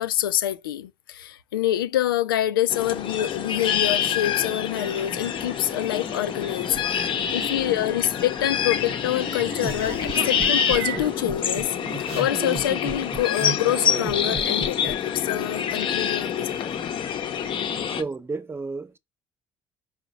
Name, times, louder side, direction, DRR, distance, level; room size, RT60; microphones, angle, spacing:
voice 1, 0.0-16.7, left 12 dB, 85° left, 0.4 m, -26 dB
sound 1, 2.7-18.0, left 8 dB, 50° left, 0.8 m, -27 dB
sound 2, 4.7-11.2, right 8 dB, 75° right, 0.7 m, -39 dB
voice 2, 7.0-7.5 17.9-19.0, right 4 dB, 20° right, 0.6 m, -33 dB
sound 3, 9.6-14.9, right 4 dB, 50° right, 1.2 m, -34 dB
4.8 x 2.3 x 4.0 m
hypercardioid pair, 60°, 11 cm